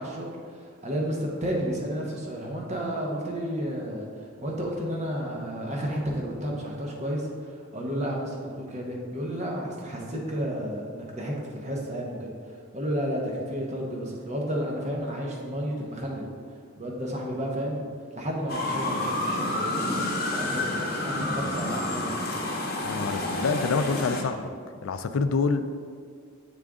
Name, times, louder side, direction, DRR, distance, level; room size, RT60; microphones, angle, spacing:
voice 1, 0.0-4.1 4.4-12.3 12.7-16.3 16.8-17.9 18.2-19.8 20.3-22.4, equal, 30° right, -1 dB, 0.8 m, -32 dB
sound 1, 18.5-24.2, left 1 dB, 45° left, 0.8 m, -29 dB
voice 2, 22.8-24.5 24.8-25.8, left 4 dB, 70° left, 10 dB, 0.3 m, -27 dB
7.3 x 3.7 x 3.6 m, 2.1 s
head